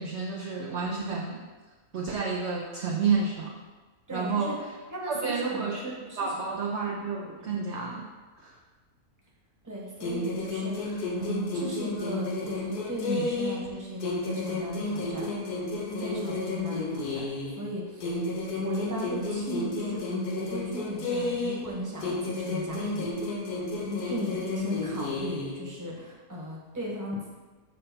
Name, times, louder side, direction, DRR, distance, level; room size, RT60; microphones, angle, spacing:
voice 1, 0.0-1.4 1.9-3.6 4.1-4.7 5.1-8.1 8.4-8.6, right 4 dB, 55° right, -1 dB, 0.8 m, -30 dB
voice 2, 4.1-4.6 4.9-5.7 6.1-6.3 7.4-7.5 9.6-15.3 15.9-18.2 18.5-20.1 20.3-23.4 23.8-27.2, equal, 15° right, -4 dB, 1.2 m, -36 dB
sound 1, 10.0-13.7 14.0-17.6 18.0-21.7 22.0-25.6, left 2 dB, 80° left, 1.6 m, -32 dB
6.8 x 3.3 x 5.9 m, 1.3 s
omnidirectional pair, 1.6 m